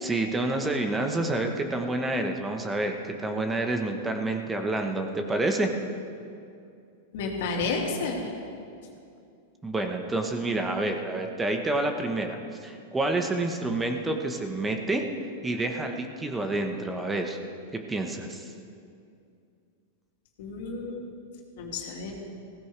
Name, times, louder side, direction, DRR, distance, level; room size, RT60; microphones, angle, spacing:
voice 1, 0.0-5.7 9.6-12.4 12.6-15.0 15.4-17.4 17.7-18.5, right 2 dB, 15° right, 4 dB, 1.1 m, -28 dB
voice 2, 7.1-8.3 20.4-21.0 21.6-22.1, left 4 dB, 70° left, -1 dB, 2.6 m, -31 dB
16.5 x 15.0 x 3.4 m, 2.4 s
hypercardioid pair, 125°, 0 cm